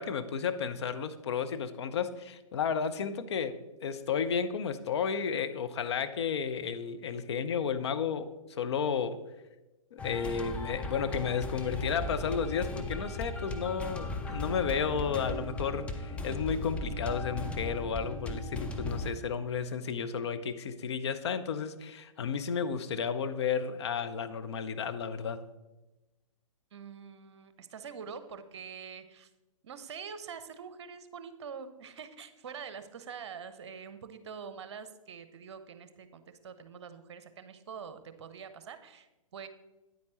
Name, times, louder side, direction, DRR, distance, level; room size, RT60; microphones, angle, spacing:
voice 1, 0.0-8.3 8.6-9.2 9.9-25.4, left 6 dB, 50° left, 10 dB, 0.6 m, -32 dB
sound 1, 10.0-19.1, left 2 dB, 5° left, 0.5 m, -37 dB
voice 2, 26.7-29.3 29.6-39.5, right 6 dB, 55° right, 11 dB, 0.7 m, -45 dB
9.3 x 8.5 x 3.1 m, 1.0 s
figure-of-eight pair, 120°, 18 cm